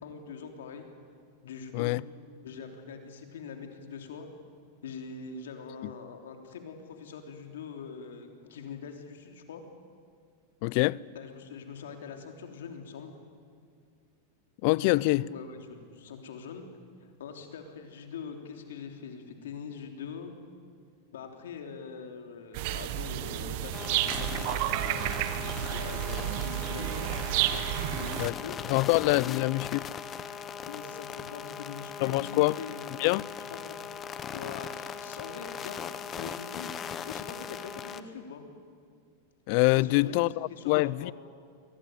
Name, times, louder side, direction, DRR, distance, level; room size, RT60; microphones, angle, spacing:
voice 1, 0.0-0.9 1.4-1.9 2.4-4.3 4.8-9.6 11.1-13.1 14.8-16.6 17.0-20.3 21.1-27.1 27.5-28.6 29.3-29.5 30.7-33.1 33.4-33.9 34.3-35.8 36.2-36.7 37.0-38.4 39.8-41.1, left 6 dB, 85° left, 3.3 m, -43 dB
voice 2, 10.6-11.0 14.6-15.2 28.2-28.3 28.7-29.8 32.0-32.6 33.0-33.2 39.5-41.1, left 22 dB, 55° left, 0.5 m, -25 dB
sound 1, 22.5-28.3, right 13 dB, 60° right, 1.3 m, -31 dB
sound 2, 23.7-38.0, left 7 dB, 25° left, 1.2 m, -39 dB
24.0 x 17.5 x 9.3 m
hypercardioid pair, 125°, 0 cm